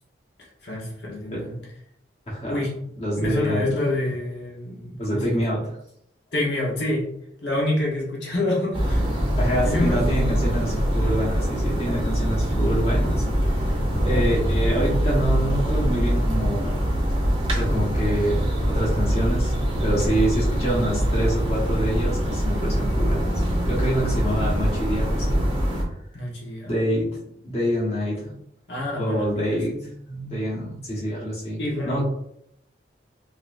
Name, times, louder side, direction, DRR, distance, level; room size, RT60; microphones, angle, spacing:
voice 1, 0.6-1.6 2.5-2.8 3.2-5.4 6.3-7.1 7.4-9.1 9.6-10.0 26.1-26.7 28.7-29.6 31.6-32.0, left 1 dB, 75° left, -3 dB, 1.2 m, -27 dB
voice 2, 2.3-2.7 3.0-3.8 5.0-5.7 9.4-13.2 13.6-13.8 14.0-16.9 17.4-25.5 26.7-27.1 27.4-28.4 29.0-32.0, right 1 dB, 35° left, -5 dB, 1.3 m, -26 dB
sound 1, 8.7-25.8, equal, 30° right, 0.7 m, -23 dB
4.0 x 2.7 x 2.5 m, 0.74 s
head